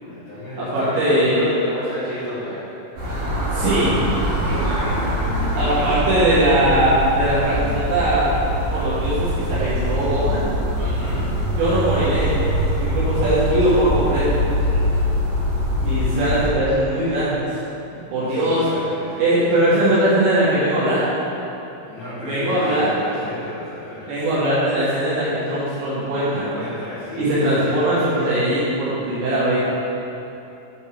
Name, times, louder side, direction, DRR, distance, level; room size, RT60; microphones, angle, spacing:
voice 1, 0.0-2.8 3.1-3.3 4.4-5.9 6.6-6.7 7.0-7.2 10.7-11.5 18.3-19.4 21.9-24.2 26.2-27.9 29.5-29.6, left 1 dB, 75° left, -11 dB, 1.7 m, -32 dB
voice 2, 0.6-1.5 3.5-4.0 5.6-8.3 8.7-10.5 11.6-14.4 15.8-17.5 17.9-18.7 19.2-21.1 22.2-22.9 24.1-26.5 27.2-29.6, right 1 dB, 75° right, -11 dB, 3.6 m, -20 dB
sound 1, 3.0-16.5, equal, 55° right, 2.7 m, -23 dB
9.6 x 5.4 x 3.4 m, 2.9 s
omnidirectional pair, 5.4 m